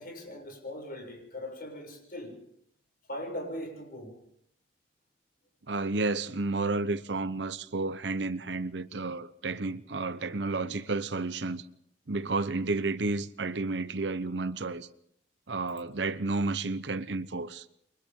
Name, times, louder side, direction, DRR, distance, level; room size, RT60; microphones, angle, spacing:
voice 1, 0.0-2.4 3.1-4.1, left 1 dB, 55° left, 7.2 m, -40 dB
voice 2, 5.7-11.7 12.1-14.9 15.5-17.6, right 3 dB, 70° right, 0.9 m, -31 dB
29.0 x 24.0 x 3.8 m
head